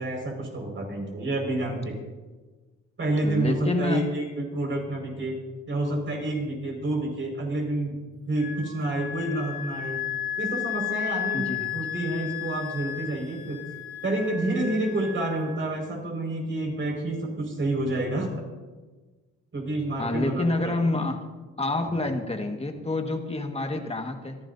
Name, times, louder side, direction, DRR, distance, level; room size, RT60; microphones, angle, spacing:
voice 1, 0.0-2.0 3.0-5.4 5.7-8.0 8.3-10.0 10.4-11.5 11.7-13.6 14.0-18.3 19.5-20.7 21.8-21.9, right 1 dB, 40° right, 0 dB, 5.5 m, -29 dB
voice 2, 3.2-4.1 11.3-11.8 20.0-21.2 21.6-24.4, left 2 dB, 20° left, 4 dB, 1.8 m, -28 dB
Wind instrument woodwind instrument, 8.4-15.8, left 10 dB, 65° left, 4.0 m, -34 dB
28.0 x 11.0 x 2.8 m, 1.3 s
cardioid pair, 90°, 30 cm